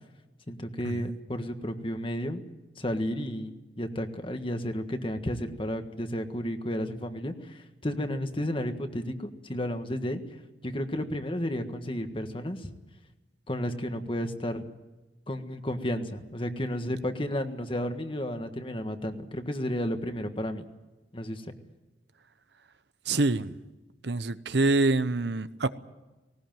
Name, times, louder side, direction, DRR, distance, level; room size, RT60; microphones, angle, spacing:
voice 1, 0.5-2.4 2.8-10.2 10.6-12.7 13.5-14.6 15.3-20.6 21.1-21.5, equal, 30° left, 7 dB, 1.6 m, -32 dB
voice 2, 23.1-23.5 24.0-25.7, right 2 dB, 70° right, 13 dB, 0.9 m, -26 dB
19.0 x 19.0 x 9.2 m, 1.1 s
head